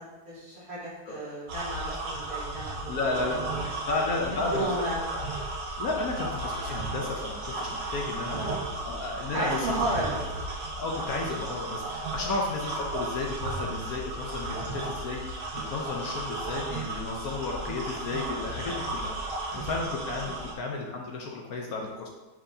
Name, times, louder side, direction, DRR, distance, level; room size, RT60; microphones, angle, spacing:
voice 1, 0.0-3.2 3.6-3.7 4.3-5.0 5.8-5.9 8.3-8.9 9.3-10.2 10.7-10.8 12.1-12.2 19.5-19.6, right 1 dB, 40° right, -7 dB, 2.0 m, -33 dB
sound 1, 1.5-20.5, right 2 dB, 85° right, 1.7 m, -34 dB
voice 2, 2.9-3.4 3.9-4.7 5.1-5.2 5.8-8.5 8.8-9.7 10.8-19.1 19.5-22.1, left 3 dB, 65° left, 0 dB, 1.1 m, -33 dB
8.6 x 4.4 x 2.7 m, 1.1 s
omnidirectional pair, 1.8 m